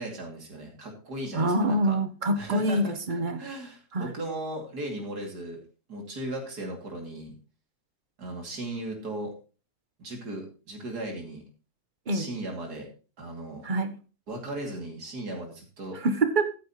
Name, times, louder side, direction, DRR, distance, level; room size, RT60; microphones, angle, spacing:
voice 1, 0.0-2.0 2.3-5.6 5.9-7.3 8.2-9.3 10.0-11.4 12.1-12.9 13.2-13.6 14.3-16.0, right 1 dB, 80° right, 1 dB, 3.2 m, -37 dB
voice 2, 1.3-3.4 3.9-4.1 12.1-12.3 13.6-13.9 16.0-16.5, right 1 dB, 35° right, 10 dB, 0.9 m, -25 dB
13.5 x 9.6 x 3.0 m, 0.34 s
omnidirectional pair, 1.7 m